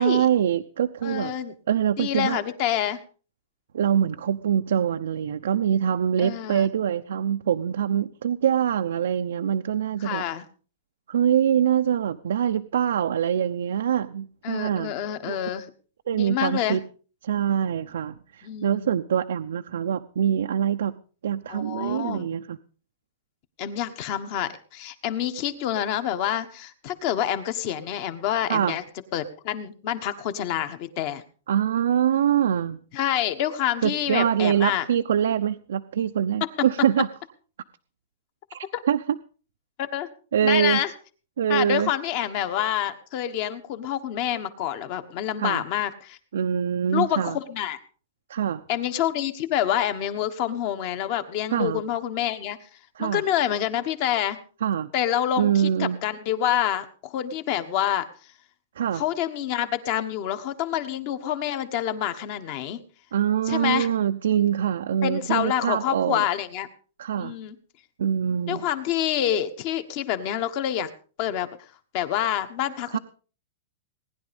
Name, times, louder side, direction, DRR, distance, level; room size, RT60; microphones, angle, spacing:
voice 1, 0.0-1.3 1.7-2.4 3.7-10.2 11.1-14.9 15.2-15.4 16.1-16.8 17.2-21.0 21.2-22.6 28.5-28.7 31.5-32.8 33.8-37.1 38.5-39.2 40.3-40.8 41.4-41.9 45.4-45.6 46.3-47.4 48.3-48.6 51.5-51.8 53.0-53.2 54.6-54.9 55.4-56.0 58.8-59.0 63.1-66.3 67.0-67.3 68.0-68.6 72.9-73.0, right 9 dB, 80° right, 6 dB, 0.8 m, -24 dB
voice 2, 1.0-1.5 2.0-3.0 6.2-6.7 10.0-10.4 14.4-15.7 16.1-16.8 18.4-18.9 21.5-22.3 23.6-28.8 29.1-31.2 32.9-34.8 36.4-36.5 38.7-38.8 39.8-40.1 40.4-40.9 41.5-46.2 46.9-47.8 48.7-52.6 53.0-54.4 54.9-58.0 58.9-62.8 63.5-63.9 65.0-66.7 67.2-67.6 68.5-70.9 71.2-71.5 71.9-73.0, left 11 dB, 30° left, 11 dB, 1.3 m, -27 dB
19.0 x 11.0 x 5.3 m, 0.39 s
supercardioid pair, 180°, 0 cm